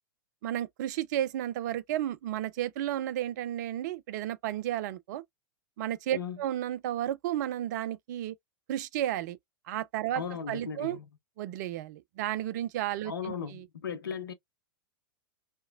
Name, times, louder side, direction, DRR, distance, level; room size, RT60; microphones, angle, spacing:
voice 1, 0.4-5.2 5.8-8.3 8.7-9.4 9.7-11.0 11.4-13.7, right 12 dB, 50° right, 0.4 m, -33 dB
voice 2, 10.1-11.1 13.0-14.3, left 7 dB, 75° left, 0.6 m, -37 dB
2.8 x 2.1 x 2.5 m
figure-of-eight pair, 95°, 12 cm